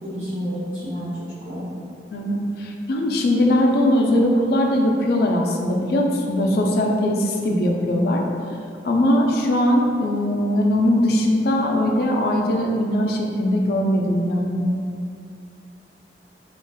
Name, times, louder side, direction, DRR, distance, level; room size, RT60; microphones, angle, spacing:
voice 1, 0.0-1.2 1.4-1.7, equal, 40° right, -11 dB, 0.5 m, -29 dB
voice 2, 2.1-8.2 8.8-14.7, left 1 dB, 55° left, 1 dB, 0.3 m, -20 dB
3.3 x 2.4 x 2.2 m, 2.4 s
head